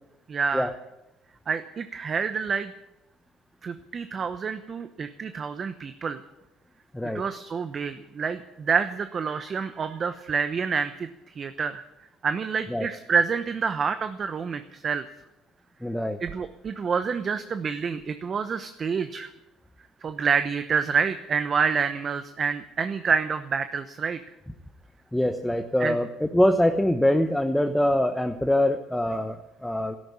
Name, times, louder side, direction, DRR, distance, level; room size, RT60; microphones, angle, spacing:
voice 1, 0.3-0.7 1.5-2.7 3.6-6.2 7.1-11.8 12.2-15.0 16.2-19.3 20.0-24.2 25.8-26.0, right 6 dB, 40° right, 10 dB, 0.9 m, -28 dB
voice 2, 15.8-16.2 25.1-30.0, left 1 dB, 5° left, 6 dB, 1.0 m, -24 dB
13.0 x 11.5 x 8.7 m, 0.97 s
cardioid pair, 100°, 0 cm